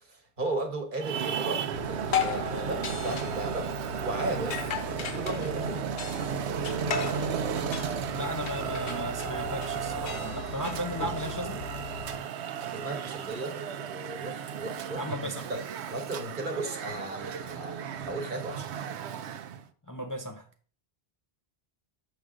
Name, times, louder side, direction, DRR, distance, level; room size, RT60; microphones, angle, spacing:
voice 1, 0.0-3.7 4.0-4.6 5.0-5.9 12.6-15.6 15.9-18.7, right 2 dB, 50° right, 1.4 m, -35 dB
Traffic noise roadway noise, 1.0-19.6, right 8 dB, 80° right, 0.9 m, -34 dB
sound 1, 1.7-12.2, left 7 dB, 75° left, 1.1 m, -36 dB
voice 2, 8.1-11.6 14.9-15.5 19.9-20.5, equal, 25° left, 0.5 m, -35 dB
6.9 x 6.4 x 3.7 m
omnidirectional pair, 1.1 m